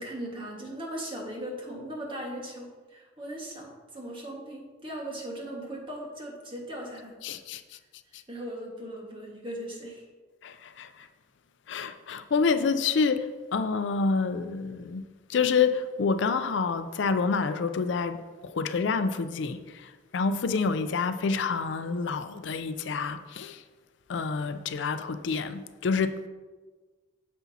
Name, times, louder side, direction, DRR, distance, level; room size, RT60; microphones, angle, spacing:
voice 1, 0.0-7.3 8.3-10.0, right 1 dB, 25° right, 1.5 m, -38 dB
voice 2, 7.2-7.8 8.1-8.2 10.4-11.1 11.7-15.0 15.3-23.6 24.1-26.3, left 5 dB, 70° left, 0.4 m, -28 dB
9.6 x 7.1 x 2.8 m
head